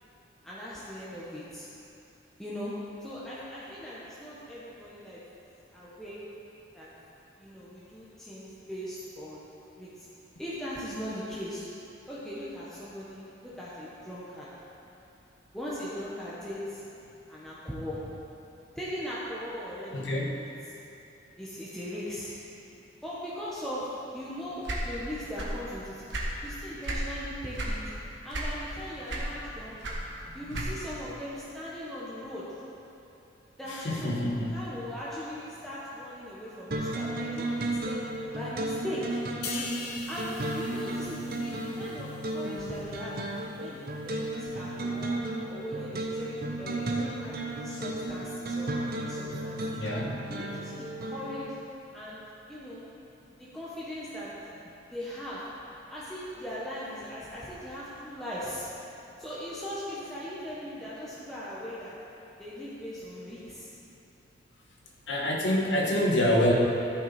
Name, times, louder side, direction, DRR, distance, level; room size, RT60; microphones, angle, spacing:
voice 1, 0.4-1.7 2.4-2.7 3.0-5.2 5.7-6.2 6.7-6.9 7.4-9.4 9.8-10.1 10.4-11.7 12.1-14.5 15.5-16.8 17.3-18.1 18.7-20.1 21.4-22.3 23.0-23.9 24.1-26.0 26.4-27.8 28.2-29.8 30.3-32.5 33.6-34.2 34.5-38.0 38.3-39.2 40.1-43.2 43.6-45.2 45.5-49.8 50.3-51.5 51.9-52.2 52.5-52.9 53.4-54.3 54.9-55.4 55.9-58.7 59.2-61.9 62.4-63.7, equal, ahead, -10 dB, 1.2 m, -39 dB
voice 2, 19.9-20.3 30.5-30.6 33.8-34.6 49.7-50.1 65.1-66.5, left 1 dB, 75° left, -2 dB, 1.5 m, -26 dB
sound 1, 24.6-25.7 25.9-27.1 27.5-27.8 28.3-28.8 29.1-31.0, right 2 dB, 70° right, 1.5 m, -34 dB
sound 2, 36.7-51.5, right 1 dB, 55° right, 0.9 m, -34 dB
sound 3, 39.4-43.0 43.3-43.6, left 4 dB, 60° left, 1.2 m, -42 dB
14.0 x 6.2 x 4.3 m, 2.9 s
head